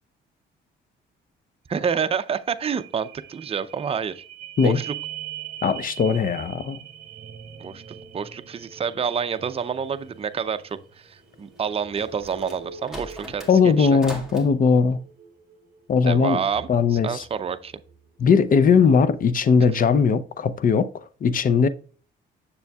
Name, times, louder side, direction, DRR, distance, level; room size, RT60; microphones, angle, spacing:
voice 1, 1.7-4.2 4.6-4.9 7.6-7.8 8.1-14.0 16.1-17.7 19.7-19.8, right 6 dB, 30° right, 0.6 m, -28 dB
sound 1, 2.4-18.0 18.5-18.6, right 9 dB, 50° right, 1.1 m, -43 dB
voice 2, 5.6-6.8 13.5-15.0 15.9-16.4 16.7-17.2 18.2-20.9 21.2-21.7, left 5 dB, 45° left, 0.7 m, -19 dB
sound 2, 11.6-14.5, equal, 5° right, 1.9 m, -40 dB
6.9 x 6.9 x 2.3 m
cardioid pair, 90°, 20 cm